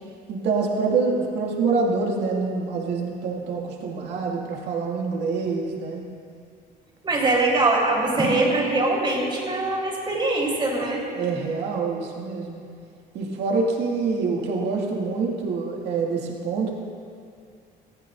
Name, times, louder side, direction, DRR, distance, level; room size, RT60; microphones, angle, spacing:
voice 1, 0.3-6.0 11.1-12.6 13.1-16.7, right 4 dB, 80° right, -2 dB, 2.3 m, -26 dB
voice 2, 7.0-11.0, right 2 dB, 30° right, -3 dB, 4.0 m, -22 dB
20.5 x 15.0 x 2.7 m, 2.3 s
cardioid pair, 110°, 17 cm